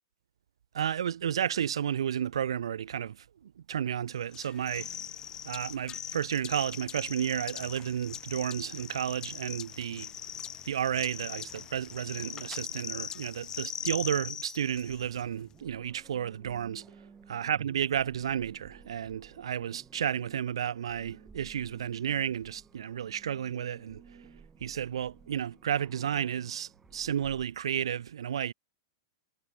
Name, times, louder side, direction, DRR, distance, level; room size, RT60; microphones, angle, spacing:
voice 1, 0.7-4.9 5.4-10.1 10.6-16.9 17.3-24.3 24.6-28.5, right 9 dB, 80° right, 0.6 m, -32 dB
sound 1, 4.3-15.2, left 9 dB, 25° left, 1.9 m, -41 dB
sound 2, 14.8-27.5, right 5 dB, 15° right, 5.5 m, -56 dB
hypercardioid pair, 120°, 3 cm